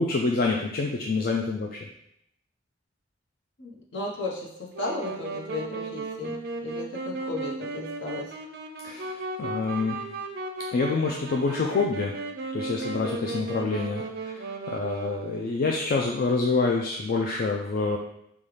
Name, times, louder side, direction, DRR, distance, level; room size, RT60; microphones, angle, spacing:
voice 1, 0.0-1.9 8.8-9.1 9.4-10.0 10.7-12.1 12.5-18.0, left 3 dB, 50° left, 0 dB, 0.3 m, -27 dB
voice 2, 3.6-8.3, left 3 dB, 70° left, -3 dB, 1.0 m, -35 dB
Wind instrument woodwind instrument, 4.7-15.6, right 3 dB, 55° right, 0.4 m, -35 dB
5.3 x 2.3 x 3.2 m, 0.77 s
head